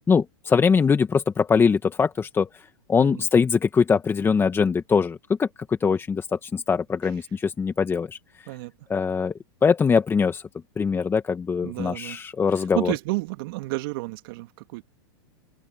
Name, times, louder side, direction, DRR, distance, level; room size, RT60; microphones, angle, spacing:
voice 1, 0.1-8.5 8.9-9.3 9.6-10.4 10.8-12.9, left 5 dB, 15° left, 1.7 m, -22 dB
voice 2, 11.6-12.2 12.5-14.8, right 22 dB, 60° right, 3.1 m, -31 dB
hypercardioid pair, 115°, 13 cm